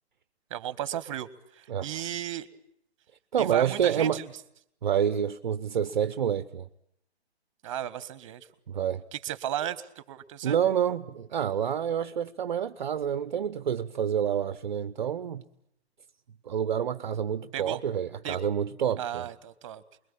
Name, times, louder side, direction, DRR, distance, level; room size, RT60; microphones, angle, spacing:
voice 1, 0.5-2.5 3.4-4.3 7.6-8.5 9.1-10.6 17.5-17.8 18.2-18.5 19.0-19.8, right 11 dB, 30° right, 1.7 m, -35 dB
voice 2, 1.7-2.1 3.3-4.2 4.8-6.7 8.7-9.0 10.4-15.4 16.4-19.3, right 9 dB, 45° right, 1.1 m, -28 dB
29.5 x 22.5 x 8.8 m
figure-of-eight pair, 135°, 32 cm